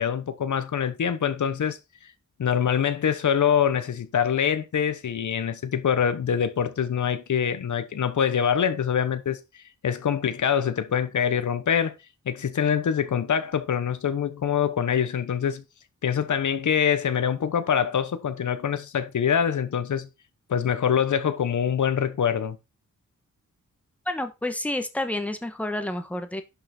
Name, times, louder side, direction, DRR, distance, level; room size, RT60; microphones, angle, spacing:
voice 1, 0.0-1.8 2.4-11.9 12.3-15.6 16.0-20.1 20.5-22.6, left 8 dB, 70° left, 1.1 m, -24 dB
voice 2, 24.1-26.4, left 1 dB, 5° left, 1.3 m, -29 dB
11.5 x 5.8 x 4.3 m
wide cardioid pair, 155°, 31 cm